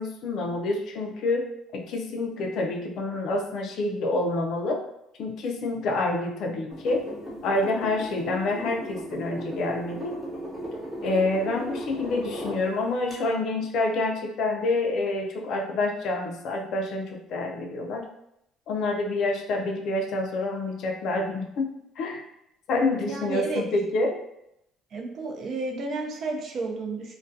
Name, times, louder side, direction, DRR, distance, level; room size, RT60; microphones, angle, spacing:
voice 1, 0.0-1.5 1.7-4.8 5.2-7.0 7.4-10.2 11.0-18.0 18.7-21.7 22.0-22.2 22.7-24.2, left 2 dB, 60° left, 2 dB, 0.4 m, -27 dB
sound 1, 6.7-12.6 13.1-13.2, equal, 10° right, 0.9 m, -36 dB
voice 2, 22.9-23.6 24.9-27.1, right 3 dB, 50° right, 1 dB, 0.5 m, -32 dB
2.3 x 2.2 x 2.6 m, 0.80 s
cardioid pair, 115°, 0 cm